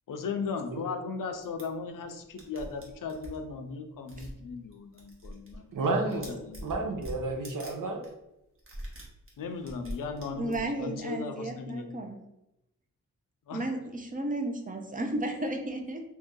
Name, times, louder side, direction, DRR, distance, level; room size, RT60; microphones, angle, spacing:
voice 1, 0.1-5.8 6.2-6.8 9.4-12.0 13.5-13.7, left 5 dB, 75° left, 6 dB, 0.5 m, -37 dB
sound 1, 1.4-1.6 2.1-2.2 2.4-3.4 4.1-4.4 4.7-5.6 5.8-7.7 8.0-8.1 8.6-10.8, equal, 40° right, 0.9 m, -43 dB
voice 2, 5.7-8.1, right 2 dB, 75° right, 3 dB, 0.7 m, -31 dB
voice 3, 10.4-12.2 13.5-16.0, right 1 dB, 25° right, 4 dB, 0.5 m, -33 dB
3.0 x 2.7 x 3.6 m, 0.89 s
wide cardioid pair, 125°, 32 cm